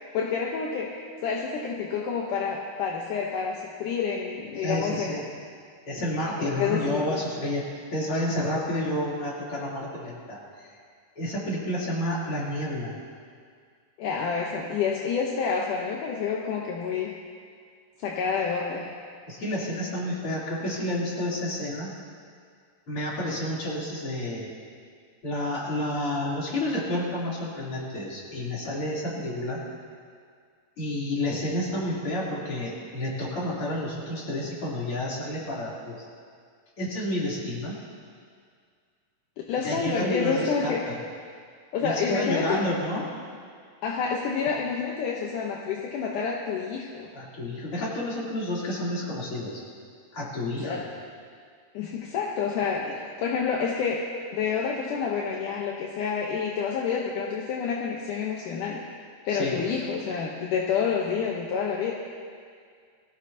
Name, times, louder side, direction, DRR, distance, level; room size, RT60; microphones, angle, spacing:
voice 1, 0.1-5.1 6.4-7.2 14.0-17.1 18.0-18.9 39.5-40.8 41.7-42.6 43.8-47.1 50.6-50.9 51.7-54.0 54.3-58.8 59.3-61.9, left 6 dB, 70° left, -1 dB, 2.1 m, -28 dB
voice 2, 4.6-5.3 5.9-7.6 7.9-10.8 11.2-13.0 19.3-21.9 22.9-24.5 25.2-29.6 30.8-36.1 36.8-37.8 39.6-41.0 41.8-43.0 47.1-49.6 50.1-50.8 52.8-53.0 59.3-59.7, left 1 dB, 35° left, -6 dB, 3.8 m, -30 dB
23.0 x 16.5 x 2.8 m, 2.1 s
omnidirectional pair, 4.6 m